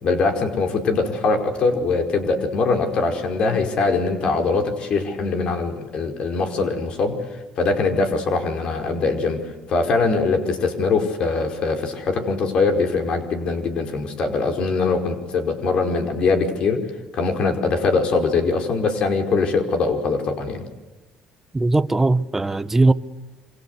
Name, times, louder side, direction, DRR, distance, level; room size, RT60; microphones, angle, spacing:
voice 1, 0.0-7.2 7.6-9.4 9.7-16.8 17.1-20.6, left 4 dB, 55° left, 4.9 m, -22 dB
voice 2, 21.5-22.9, right 2 dB, 15° right, 1.1 m, -19 dB
27.5 x 26.5 x 8.1 m
supercardioid pair, 95°, 2 cm